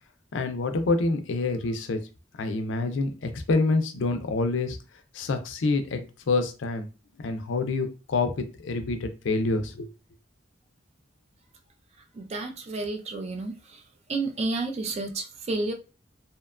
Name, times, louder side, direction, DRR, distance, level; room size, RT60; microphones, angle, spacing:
voice 1, 0.3-2.0 2.4-4.8 5.1-6.9 7.2-9.9, left 3 dB, 75° left, 0.4 m, -27 dB
voice 2, 12.2-13.5 14.1-15.7, right 3 dB, 35° right, 0.4 m, -30 dB
2.7 x 2.2 x 2.3 m
head